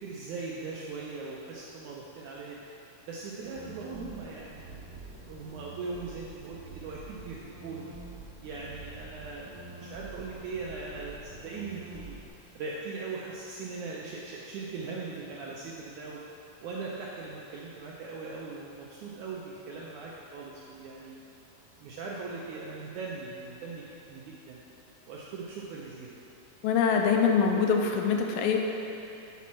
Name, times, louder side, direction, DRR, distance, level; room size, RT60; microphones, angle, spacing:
voice 1, 0.0-2.6 3.1-7.9 8.4-12.2 12.6-16.2 16.6-21.2 21.8-24.6 25.1-26.2, right 4 dB, 90° right, -4 dB, 1.7 m, -40 dB
sound 1, 3.4-12.3, right 3 dB, 60° right, 1.3 m, -46 dB
voice 2, 26.6-28.6, left 6 dB, 80° left, 2 dB, 2.2 m, -24 dB
8.2 x 4.2 x 5.9 m, 2.9 s
omnidirectional pair, 4.1 m